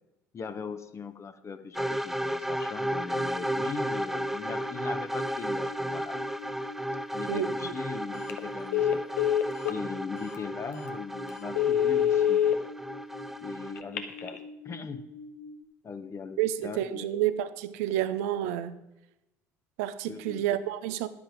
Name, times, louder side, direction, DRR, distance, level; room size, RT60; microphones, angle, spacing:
voice 1, 0.3-6.2 7.1-9.0 9.7-12.6 13.4-14.4 14.6-15.0 15.8-17.2 20.1-20.4, left 5 dB, 35° left, 9 dB, 0.9 m, -40 dB
sound 1, 1.7-13.8, equal, 5° right, 0.6 m, -34 dB
sound 2, 2.8-15.6, left 3 dB, 60° left, 1.1 m, -45 dB
voice 2, 7.3-7.7 16.4-18.8 19.8-21.1, right 12 dB, 70° right, 13 dB, 0.7 m, -30 dB
Telephone, 8.1-8.4 8.7-9.8 10.3-10.4 10.9-11.0 11.4-12.5 13.8-14.4, left 10 dB, 80° left, 0.8 m, -25 dB
10.5 x 8.6 x 5.1 m, 0.93 s
hypercardioid pair, 60°, 9 cm